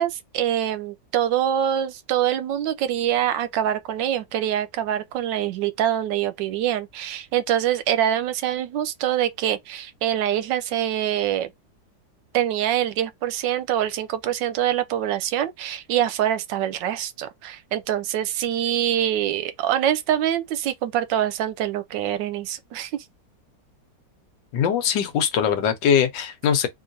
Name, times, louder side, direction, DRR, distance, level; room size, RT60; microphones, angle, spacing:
voice 1, 0.0-11.5 12.3-23.0, right 11 dB, 85° right, 1.3 m, -24 dB
voice 2, 24.5-26.7, left 8 dB, 85° left, 1.5 m, -21 dB
3.8 x 3.0 x 2.6 m
omnidirectional pair, 1.9 m